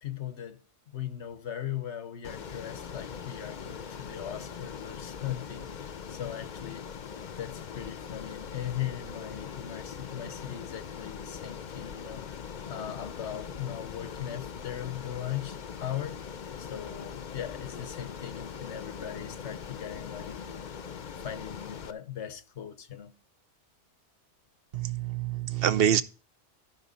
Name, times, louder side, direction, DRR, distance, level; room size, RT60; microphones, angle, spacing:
voice 1, 0.0-6.9 7.4-12.2 12.6-16.2 16.6-20.6 21.2-23.2, left 10 dB, 90° left, 1.2 m, -39 dB
Ocean, 2.2-21.9, left 7 dB, 50° left, 0.7 m, -41 dB
voice 2, 24.7-26.0, right 10 dB, 60° right, 0.9 m, -26 dB
13.5 x 5.7 x 4.0 m
omnidirectional pair, 1.1 m